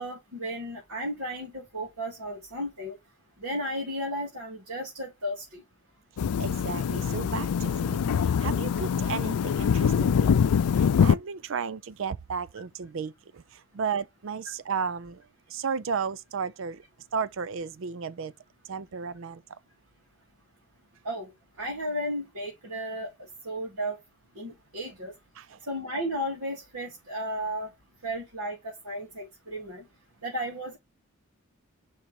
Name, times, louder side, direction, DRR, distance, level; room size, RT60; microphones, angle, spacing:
voice 1, 0.0-3.0 3.4-5.6 21.0-21.3 21.6-23.1 23.4-24.0 24.4-25.1 25.7-27.7 28.0-29.8 30.2-30.8, equal, 75° right, 2.8 m, -34 dB
sound 1, 6.2-11.2, left 7 dB, 90° left, 0.4 m, -24 dB
voice 2, 6.4-8.0 8.4-10.3 11.0-13.1 13.7-15.2 15.5-16.8 17.1-18.3 18.7-19.4 25.4-25.5, right 6 dB, 60° right, 0.4 m, -33 dB
5.5 x 3.6 x 4.6 m
head